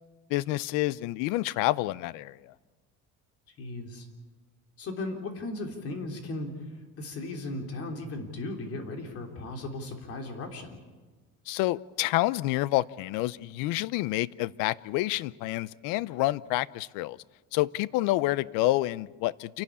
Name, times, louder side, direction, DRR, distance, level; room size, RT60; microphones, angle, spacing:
voice 1, 0.3-2.5 11.5-17.2 17.5-19.6, left 17 dB, 80° left, 21 dB, 0.6 m, -28 dB
voice 2, 3.5-4.1 4.8-10.8, left 2 dB, 45° left, 3 dB, 3.5 m, -37 dB
28.0 x 12.5 x 8.6 m, 1.3 s
cardioid pair, 145°, 32 cm